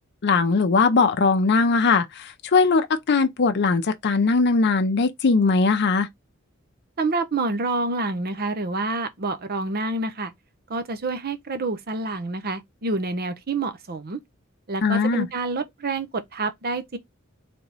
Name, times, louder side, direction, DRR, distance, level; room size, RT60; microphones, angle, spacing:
voice 1, 0.2-2.1 2.5-6.1 14.8-15.3, left 4 dB, 55° left, 0.5 m, -20 dB
voice 2, 7.0-10.3 10.7-14.2 14.7-17.0, right 3 dB, 50° right, 0.7 m, -27 dB
3.4 x 3.0 x 4.0 m
head